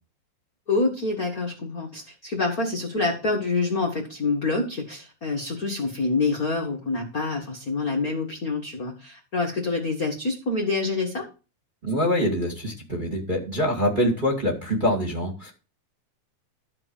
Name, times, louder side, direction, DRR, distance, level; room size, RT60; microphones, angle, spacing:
voice 1, 0.7-11.2, left 3 dB, 45° left, 0 dB, 1.2 m, -26 dB
voice 2, 11.8-15.5, equal, 15° right, 0 dB, 2.0 m, -24 dB
13.5 x 5.0 x 7.2 m, 0.34 s
omnidirectional pair, 4.2 m